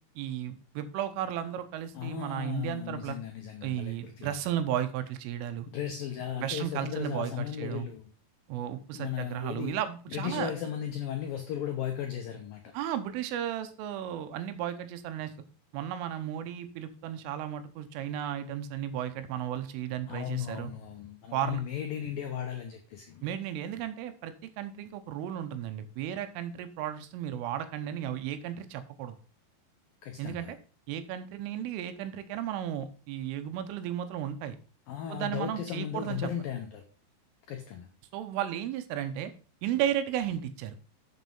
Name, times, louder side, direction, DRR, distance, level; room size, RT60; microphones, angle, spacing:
voice 1, 0.2-3.2 3.6-5.7 6.4-7.9 8.5-10.5 12.7-15.3 15.7-20.7 21.3-21.6 23.2-29.2 30.2-30.6 30.9-34.6 35.1-36.3 38.1-39.3 39.6-40.8, right 10 dB, 85° right, 10 dB, 3.5 m, -34 dB
voice 2, 1.9-4.3 5.7-8.1 8.9-9.8 10.1-12.7 20.1-23.2 30.0-30.5 34.9-36.8 37.5-37.9, left 9 dB, 85° left, 4 dB, 2.0 m, -36 dB
7.7 x 7.3 x 5.4 m, 0.37 s
omnidirectional pair, 5.6 m